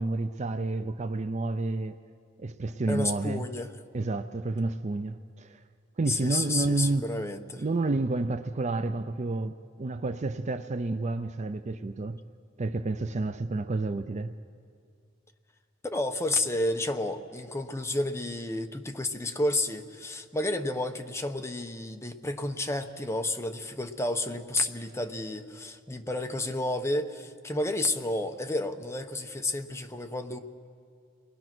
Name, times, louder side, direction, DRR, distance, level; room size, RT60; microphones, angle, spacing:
voice 1, 0.0-2.0 2.4-3.4 3.9-5.6 6.0-7.1 7.6-12.2 12.6-14.3, right 2 dB, 35° right, 0.5 m, -30 dB
voice 2, 2.9-3.7 6.1-7.6 15.8-30.4, left 2 dB, 15° left, 1.0 m, -31 dB
29.0 x 20.5 x 6.1 m
head